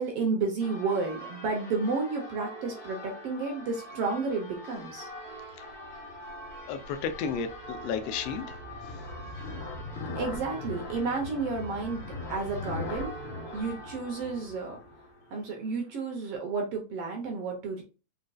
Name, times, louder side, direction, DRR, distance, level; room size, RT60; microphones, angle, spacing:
voice 1, 0.0-5.1 10.2-12.0 12.3-13.1 13.5-14.8 15.3-17.8, right 4 dB, 65° right, 1.7 m, -31 dB
Church bell, 0.6-16.3, equal, 45° left, 1.4 m, -45 dB
sound 1, 5.5-15.0, left 2 dB, 60° left, 1.6 m, -41 dB
voice 2, 6.7-9.1, left 6 dB, 75° left, 1.5 m, -34 dB
5.0 x 3.9 x 2.3 m
omnidirectional pair, 3.4 m